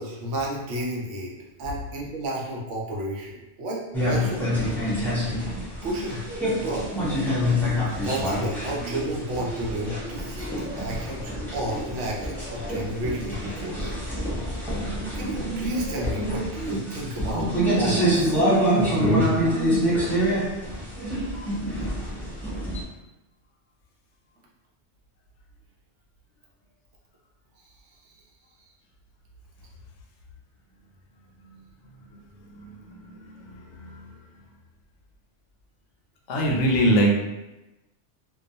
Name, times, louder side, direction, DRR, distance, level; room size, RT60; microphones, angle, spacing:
voice 1, 0.0-1.3 1.6-4.4 5.8-6.2 6.6-6.9 8.0-14.0 15.1-18.4, right 1 dB, 80° right, -2 dB, 0.9 m, -32 dB
sound 1, 3.9-22.8, equal, 5° left, 0.4 m, -26 dB
voice 2, 32.5-34.1 36.3-37.2, right 1 dB, 80° left, -1 dB, 0.9 m, -24 dB
2.3 x 2.3 x 2.6 m, 0.99 s
omnidirectional pair, 1.2 m